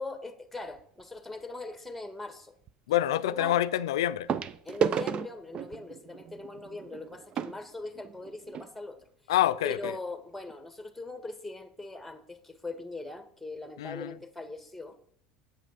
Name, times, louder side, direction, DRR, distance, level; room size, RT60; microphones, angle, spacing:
voice 1, 0.0-2.5 3.2-3.6 4.6-9.0 9.6-15.0, left 2 dB, 5° left, 1.6 m, -41 dB
sound 1, 0.7-1.0 2.7-2.8 4.3-8.7 9.5-9.6 9.8-10.0 10.5-10.6, right 7 dB, 45° right, 0.6 m, -34 dB
voice 2, 2.9-4.3 9.3-9.8 13.8-14.1, left 13 dB, 85° left, 0.4 m, -26 dB
8.1 x 8.1 x 5.9 m
supercardioid pair, 90°, 2 cm